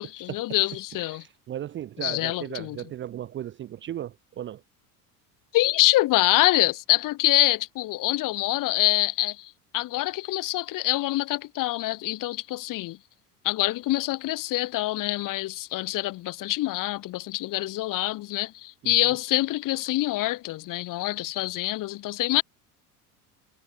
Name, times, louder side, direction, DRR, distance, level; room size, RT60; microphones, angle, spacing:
voice 1, 0.0-1.2 2.0-2.8 5.5-13.0 13.4-22.4, left 17 dB, 45° left, 1.3 m, -25 dB
voice 2, 0.7-4.6 18.8-18.9, right 11 dB, 25° right, 0.6 m, -36 dB
figure-of-eight pair, 70°, 45 cm